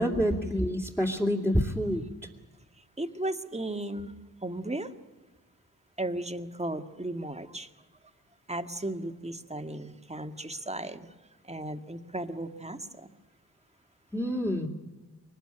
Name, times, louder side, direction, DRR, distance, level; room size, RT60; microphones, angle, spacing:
voice 1, 0.0-2.1 14.1-14.7, equal, 5° left, -3 dB, 2.6 m, -27 dB
voice 2, 3.0-4.1 4.4-4.9 6.0-7.7 8.5-11.1 11.5-13.1, right 1 dB, 15° right, 7 dB, 1.8 m, -35 dB
23.0 x 20.0 x 10.0 m, 1.2 s
cardioid pair, 60°, 38 cm